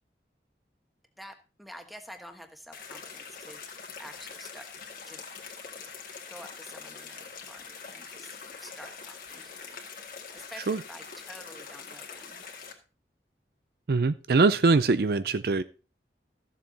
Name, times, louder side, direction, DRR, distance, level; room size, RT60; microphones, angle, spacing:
voice 1, 1.2-3.6 4.0-4.7 5.1-5.2 6.3-9.8 10.3-12.5, equal, ahead, 5 dB, 1.2 m, -48 dB
sound 1, 2.7-12.7, left 5 dB, 50° left, 2.0 m, -44 dB
voice 2, 13.9-15.6, right 3 dB, 60° right, 14 dB, 0.5 m, -23 dB
14.0 x 7.4 x 4.0 m, 0.35 s
head